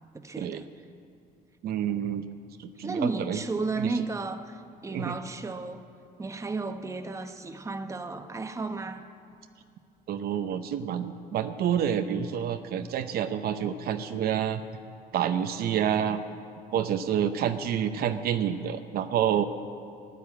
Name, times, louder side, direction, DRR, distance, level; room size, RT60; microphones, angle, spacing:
voice 1, 0.1-0.7 2.8-5.8 6.2-9.0, right 3 dB, 15° right, 7 dB, 0.9 m, -33 dB
voice 2, 1.6-2.3 2.6-3.4 3.8-3.9 4.9-5.1 10.1-14.6 15.1-16.2 16.7-19.4, right 9 dB, 65° right, 8 dB, 0.7 m, -28 dB
14.5 x 11.0 x 8.6 m, 2.3 s
cardioid pair, 110°, 17 cm